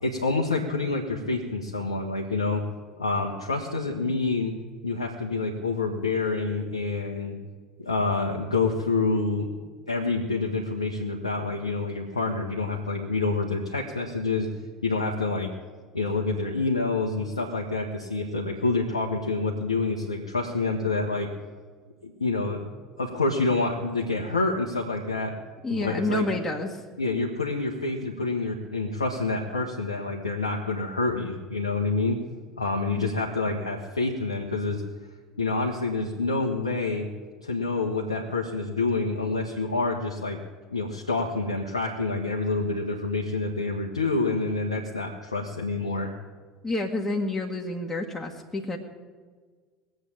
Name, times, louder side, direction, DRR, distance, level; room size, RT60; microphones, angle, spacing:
voice 1, 0.0-2.6 3.0-4.5 4.8-7.3 7.8-9.5 9.9-14.5 14.8-15.5 15.9-21.3 22.0-22.7 23.0-25.3 25.7-26.2 27.0-32.2 32.6-34.8 35.4-37.1 37.4-40.4 40.7-46.1, left 3 dB, 80° left, 0 dB, 1.3 m, -27 dB
voice 2, 25.6-26.8 32.9-33.2 46.6-48.8, left 2 dB, 15° left, -1 dB, 1.8 m, -29 dB
20.5 x 7.9 x 8.7 m, 1.5 s
figure-of-eight pair, 70°, 3 cm